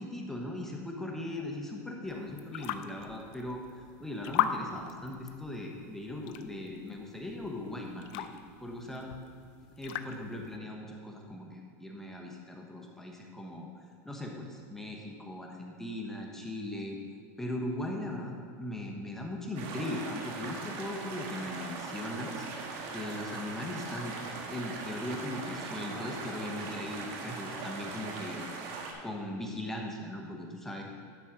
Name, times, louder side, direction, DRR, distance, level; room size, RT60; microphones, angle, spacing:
voice 1, 0.0-3.6 4.0-8.3 8.6-9.1 9.8-13.7 14.0-17.0 17.4-22.5 22.9-24.2 24.5-28.5 29.0-30.8, left 1 dB, 5° left, 0 dB, 1.0 m, -39 dB
sound 1, 2.1-10.6, left 10 dB, 60° left, 0.5 m, -39 dB
sound 2, 19.6-28.9, right 4 dB, 60° right, 1.4 m, -40 dB
11.0 x 4.2 x 6.2 m, 2.3 s
supercardioid pair, 130°, 9 cm